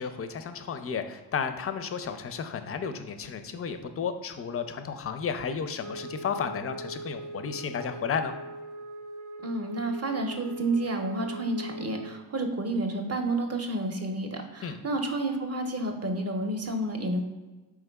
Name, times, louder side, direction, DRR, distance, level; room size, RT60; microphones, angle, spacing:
voice 1, 0.0-8.3 14.6-14.8, left 6 dB, 30° left, 9 dB, 0.4 m, -33 dB
Wind instrument woodwind instrument, 5.8-12.2, right 1 dB, 70° right, 0.7 m, -41 dB
voice 2, 9.4-17.2, right 2 dB, 30° right, 3 dB, 0.7 m, -30 dB
4.6 x 3.5 x 2.2 m, 1.2 s
hypercardioid pair, 40°, 49 cm